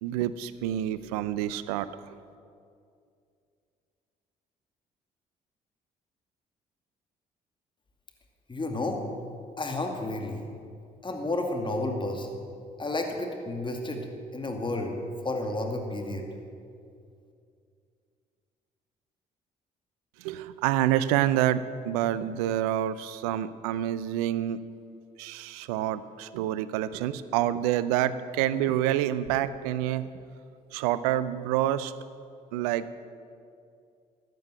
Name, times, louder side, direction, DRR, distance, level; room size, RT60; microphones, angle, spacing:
voice 1, 0.0-1.9 20.2-24.6 25.2-30.1 30.7-31.9 32.5-32.9, right 12 dB, 80° right, 15 dB, 0.5 m, -27 dB
voice 2, 8.5-9.0 9.6-10.5 11.0-12.4 12.8-15.0 15.2-16.3, left 2 dB, 25° left, 3 dB, 2.4 m, -31 dB
13.0 x 9.3 x 7.9 m, 2.4 s
hypercardioid pair, 50°, 19 cm